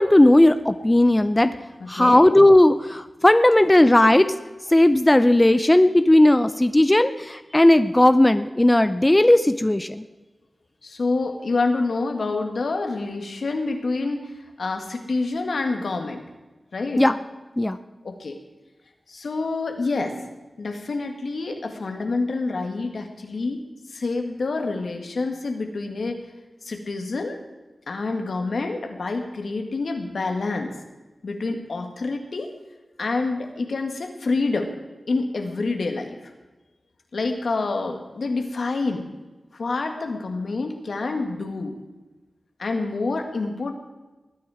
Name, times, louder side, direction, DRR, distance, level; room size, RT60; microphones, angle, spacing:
voice 1, 0.0-1.5 1.9-4.4 4.7-10.0 17.0-17.1 17.6-17.8, left 1 dB, 20° left, 11 dB, 0.6 m, -16 dB
voice 2, 1.8-2.2 10.8-14.3 14.6-16.2 16.7-17.0 18.0-18.4 19.1-20.2 20.6-23.6 23.9-26.2 26.6-27.4 27.9-30.7 31.2-32.5 33.0-34.7 35.1-36.3 37.1-39.1 39.5-41.8 42.6-43.7, left 3 dB, 80° left, 4 dB, 1.9 m, -27 dB
20.0 x 9.7 x 5.0 m, 1.2 s
cardioid pair, 50°, 0 cm